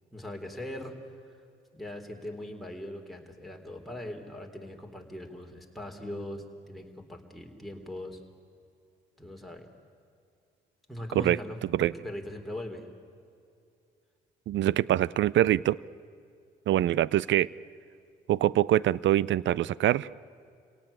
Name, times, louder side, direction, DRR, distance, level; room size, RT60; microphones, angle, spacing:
voice 1, 0.1-0.9 1.3-1.4 1.7-8.2 9.2-9.7 10.9-12.9, left 1 dB, ahead, 1 dB, 3.9 m, -40 dB
voice 2, 14.5-15.8 16.7-17.5 18.3-20.1, right 13 dB, 60° right, 22 dB, 0.5 m, -24 dB
27.5 x 17.5 x 8.7 m, 2.4 s
hypercardioid pair, 50°, 21 cm